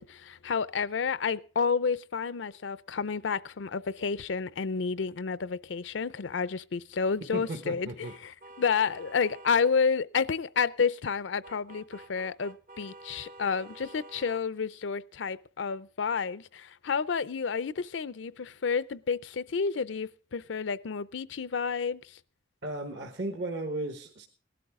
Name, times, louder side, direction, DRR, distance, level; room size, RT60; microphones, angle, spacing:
voice 1, 0.0-22.2, left 5 dB, 80° left, 0.5 m, -30 dB
voice 2, 7.3-8.1 22.6-24.3, right 2 dB, 65° right, 1.3 m, -35 dB
sound 1, 8.0-9.7 11.4-14.4, right 2 dB, 45° right, 0.7 m, -49 dB
18.5 x 12.0 x 3.6 m
head